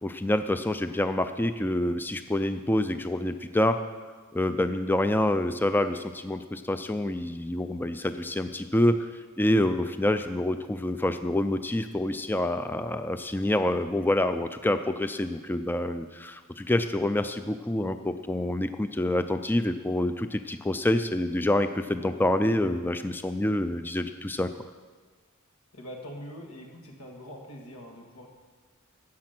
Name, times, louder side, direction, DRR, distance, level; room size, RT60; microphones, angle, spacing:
voice 1, 0.0-3.8 4.3-9.1 9.4-24.5, left 1 dB, 10° left, 9 dB, 0.3 m, -27 dB
voice 2, 25.7-28.3, equal, 85° left, 1 dB, 2.1 m, -43 dB
13.5 x 8.7 x 5.9 m, 1.5 s
head